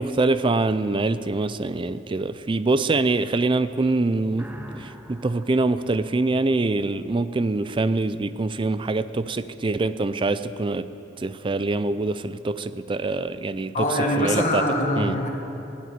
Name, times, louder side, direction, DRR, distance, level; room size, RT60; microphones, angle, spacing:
voice 1, 0.0-4.5 4.8-10.9 11.2-13.9 14.2-14.6 15.0-15.2, right 3 dB, 30° right, 13 dB, 0.4 m, -24 dB
sound 1, 4.3-7.0, equal, 10° right, 0.9 m, -43 dB
voice 2, 13.7-15.3, left 1 dB, 45° left, 1 dB, 1.7 m, -23 dB
16.0 x 7.3 x 9.5 m, 2.9 s
head